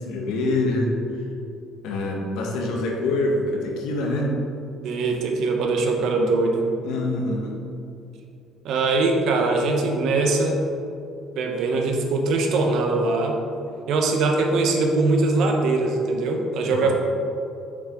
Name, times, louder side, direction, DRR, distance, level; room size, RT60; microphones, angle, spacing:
voice 1, 0.1-0.9 1.8-4.4 6.8-7.6 16.6-16.9, left 2 dB, 85° left, 0 dB, 1.2 m, -25 dB
voice 2, 4.8-6.6 8.6-10.6 11.3-13.4 13.9-16.9, right 3 dB, 60° right, 2 dB, 0.9 m, -22 dB
6.4 x 5.9 x 3.7 m, 2.6 s
cardioid pair, 155°, 0 cm